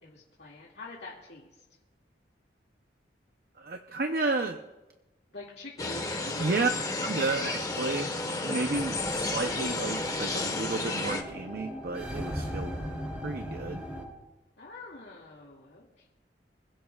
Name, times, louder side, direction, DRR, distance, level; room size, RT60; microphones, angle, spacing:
voice 1, 0.0-1.6 5.3-6.7 14.6-16.1, left 3 dB, 70° left, -6 dB, 2.3 m, -45 dB
voice 2, 3.6-4.6 6.4-6.7 7.0-12.7 13.2-13.8, right 3 dB, 60° right, 5 dB, 0.7 m, -32 dB
sound 1, 5.8-11.2, left 2 dB, 20° left, 1.3 m, -32 dB
sound 2, 8.7-14.0, equal, 10° right, 3.1 m, -38 dB
26.0 x 16.0 x 2.4 m, 1.1 s
head